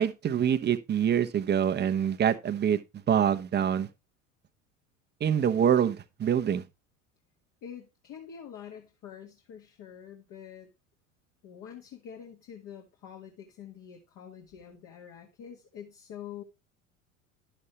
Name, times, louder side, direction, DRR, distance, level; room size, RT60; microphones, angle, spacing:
voice 1, 0.0-2.8 3.1-3.9 5.2-6.6, right 9 dB, 25° right, 0.9 m, -25 dB
voice 2, 7.6-10.7 11.4-16.4, left 8 dB, 45° left, 1.8 m, -46 dB
11.0 x 7.1 x 3.2 m
figure-of-eight pair, 70°, 40 cm